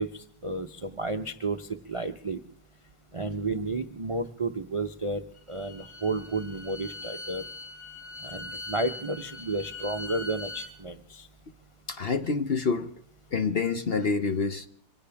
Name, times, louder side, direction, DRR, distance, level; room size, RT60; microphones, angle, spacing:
voice 1, 0.0-2.4 3.1-5.2 5.5-7.4 8.2-11.3, right 2 dB, 35° right, 0.5 m, -32 dB
Bowed string instrument, 5.3-10.7, left 2 dB, 15° right, 4.3 m, -41 dB
voice 2, 11.9-12.9 13.3-14.7, left 4 dB, 50° left, 0.8 m, -27 dB
24.5 x 17.0 x 3.4 m
omnidirectional pair, 1.7 m